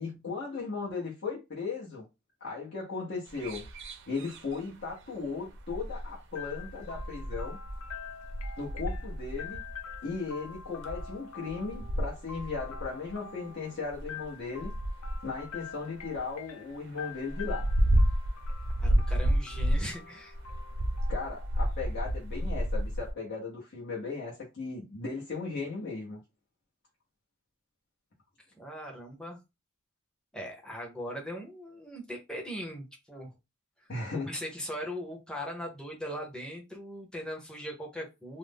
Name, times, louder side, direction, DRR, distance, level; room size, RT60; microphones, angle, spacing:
voice 1, 0.0-2.1 2.4-3.6 4.1-7.6 8.6-9.6 10.0-14.7 15.2-17.7 21.1-26.2 33.9-34.3, left 4 dB, 55° left, 0.8 m, -37 dB
sound 1, 3.3-4.9 5.2-11.1 11.5-13.1 13.8-16.2 16.5-16.6 16.8-20.1 20.3-23.1, equal, 60° right, 0.5 m, -31 dB
sound 2, 6.4-22.1, left 6 dB, 80° left, 0.5 m, -47 dB
voice 2, 18.8-20.4 28.6-29.4 30.3-33.3 33.8-38.4, equal, 5° left, 0.7 m, -40 dB
2.5 x 2.0 x 3.4 m
head